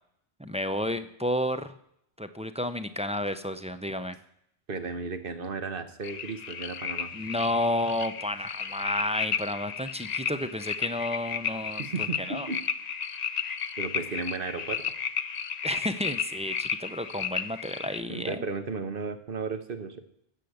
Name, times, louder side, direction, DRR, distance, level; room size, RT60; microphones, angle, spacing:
voice 1, 0.4-1.7 2.2-4.2 7.1-11.9 12.2-12.5 15.6-18.4, left 1 dB, 10° right, 9 dB, 0.4 m, -31 dB
voice 2, 4.7-7.1 11.8-12.6 13.8-14.8 18.1-20.0, right 4 dB, 60° right, 9 dB, 1.3 m, -34 dB
sound 1, 6.0-18.0, left 7 dB, 45° left, 0.6 m, -33 dB
15.5 x 6.8 x 7.8 m, 0.74 s
omnidirectional pair, 1.1 m